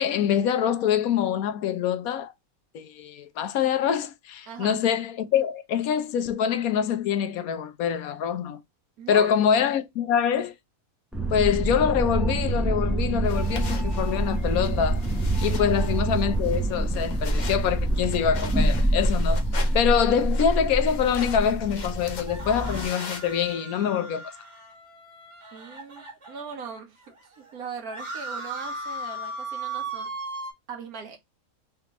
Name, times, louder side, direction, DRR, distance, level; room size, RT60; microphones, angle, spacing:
voice 1, 0.0-2.3 2.7-8.6 9.1-10.5 11.3-15.0 15.4-19.4 19.7-24.3, left 8 dB, 75° left, 1.1 m, -25 dB
voice 2, 4.5-4.8 9.0-9.3 15.6-15.8 25.5-30.1 30.7-31.2, right 5 dB, 80° right, 1.6 m, -39 dB
sound 1, 11.1-22.9, right 1 dB, ahead, 0.5 m, -26 dB
sound 2, 13.2-23.5, left 5 dB, 50° left, 0.5 m, -42 dB
sound 3, 22.2-26.7 27.2-27.3 27.5-30.5, right 2 dB, 20° right, 1.4 m, -37 dB
3.6 x 3.4 x 2.9 m
omnidirectional pair, 1.5 m